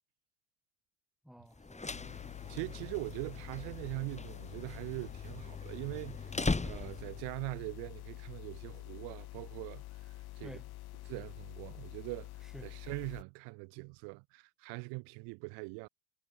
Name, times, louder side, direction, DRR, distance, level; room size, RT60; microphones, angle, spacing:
voice 1, 1.2-2.9 10.4-10.7 12.5-12.7, equal, ahead, 5.8 m, -53 dB
sound 1, 1.5-7.3, left 3 dB, 15° left, 4.0 m, -40 dB
sound 2, 1.9-13.2, left 17 dB, 55° left, 4.6 m, -47 dB
voice 2, 2.5-6.3 6.6-10.6 11.0-12.3 12.6-15.9, right 32 dB, 60° right, 2.8 m, -42 dB
figure-of-eight pair, 65°, 46 cm